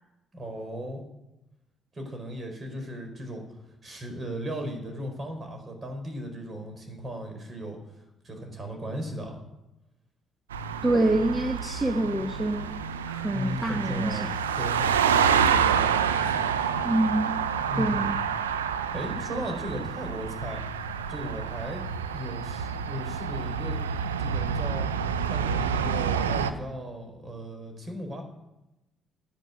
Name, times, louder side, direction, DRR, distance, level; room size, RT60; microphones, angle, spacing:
voice 1, 0.3-1.0 1.9-3.4 3.8-7.8 8.2-9.4 13.3-16.5 17.7-18.1 18.9-20.6 21.1-21.8 22.1-23.8 24.2-24.9 25.3-28.2, equal, 35° right, 4 dB, 5.2 m, -36 dB
sound 1, 10.5-26.5, right 7 dB, 90° right, 0.7 m, -28 dB
voice 2, 10.8-12.7 13.0-14.3 16.8-17.4 17.8-18.2, right 1 dB, 15° right, 4 dB, 1.6 m, -26 dB
12.5 x 11.0 x 8.5 m, 0.96 s
hypercardioid pair, 50°, 0 cm